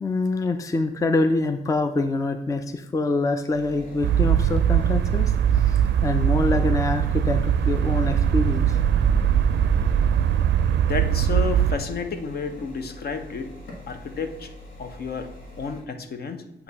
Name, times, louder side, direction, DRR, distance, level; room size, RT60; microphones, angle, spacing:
voice 1, 0.0-8.8, left 2 dB, 15° left, 9 dB, 0.4 m, -25 dB
sound 1, 3.5-15.8, left 1 dB, 90° left, 1.6 m, -43 dB
sound 2, 4.0-11.8, right 9 dB, 70° right, 0.4 m, -21 dB
voice 2, 10.9-13.5 13.9-14.5 14.8-16.6, left 5 dB, 55° left, 8 dB, 0.7 m, -31 dB
8.0 x 2.9 x 4.1 m, 0.90 s
cardioid pair, 80°, 19 cm